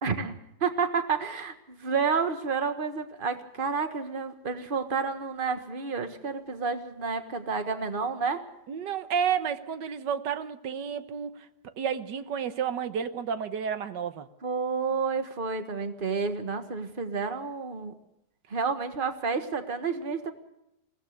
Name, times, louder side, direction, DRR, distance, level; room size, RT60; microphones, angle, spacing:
voice 1, 0.0-8.4 14.4-17.9 18.5-20.3, right 5 dB, 30° right, 8 dB, 1.7 m, -30 dB
voice 2, 8.7-14.3, right 7 dB, 80° right, 11 dB, 1.7 m, -31 dB
22.5 x 17.5 x 6.7 m, 0.83 s
omnidirectional pair, 1.9 m